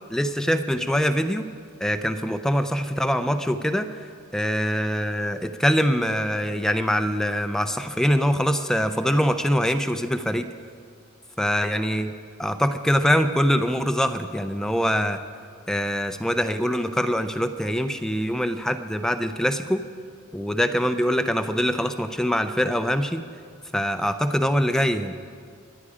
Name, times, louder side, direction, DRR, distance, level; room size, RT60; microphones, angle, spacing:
voice 1, 0.1-1.4 1.8-3.9 4.3-10.5 11.4-12.1 12.4-15.2 15.7-19.8 20.3-23.2 23.7-25.1, equal, 5° left, 8 dB, 0.4 m, -23 dB
22.5 x 9.8 x 4.9 m, 2.2 s
head